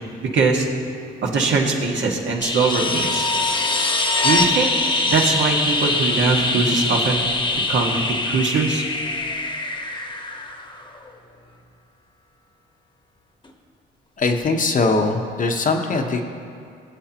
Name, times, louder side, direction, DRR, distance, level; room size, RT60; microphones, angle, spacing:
voice 1, 0.2-0.7 1.2-3.3 4.2-4.7 5.1-7.2 7.7-8.8, right 4 dB, 70° right, -1 dB, 1.8 m, -21 dB
sound 1, 2.4-11.1 13.4-13.5, left 2 dB, 25° left, 1.2 m, -23 dB
voice 2, 14.2-16.2, left 3 dB, 40° left, 4 dB, 1.1 m, -21 dB
21.0 x 7.9 x 3.0 m, 2.5 s
cardioid pair, 90°, 20 cm